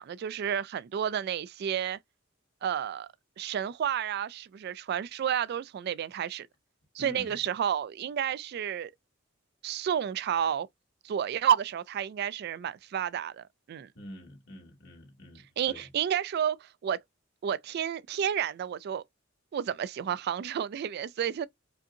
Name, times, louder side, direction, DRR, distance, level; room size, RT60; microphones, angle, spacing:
voice 1, 0.0-2.0 2.6-3.1 3.4-6.5 6.9-8.9 9.6-10.7 11.0-13.9 15.6-17.0 17.4-19.0 19.5-21.5, right 9 dB, 55° right, 0.3 m, -31 dB
voice 2, 7.0-7.4 13.9-15.9, left 1 dB, 60° left, 2.3 m, -47 dB
5.0 x 2.7 x 2.6 m
head